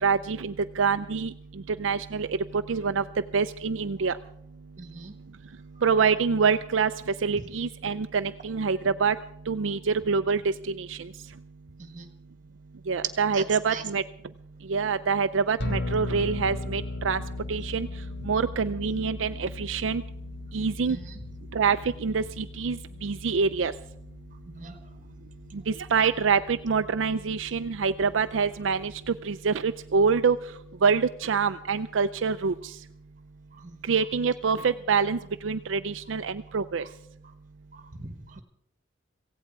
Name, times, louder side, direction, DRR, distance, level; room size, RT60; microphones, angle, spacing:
voice 1, 0.0-3.0 3.3-4.2 5.8-9.2 9.5-11.1 12.9-14.0 14.7-17.2 17.5-17.9 18.2-20.0 20.5-21.0 21.5-23.7 25.5-30.4 30.8-32.8 33.9-36.8, right 5 dB, 80° right, 9 dB, 0.5 m, -26 dB
voice 2, 4.8-5.1 11.8-12.1 13.3-13.4 13.7-13.8 20.9-21.0 24.5-24.8 33.6-33.7 37.7-38.4, right 4 dB, 40° right, 9 dB, 1.6 m, -41 dB
sound 1, 15.6-29.0, left 2 dB, 60° left, 1.5 m, -38 dB
17.0 x 16.0 x 4.7 m, 0.72 s
head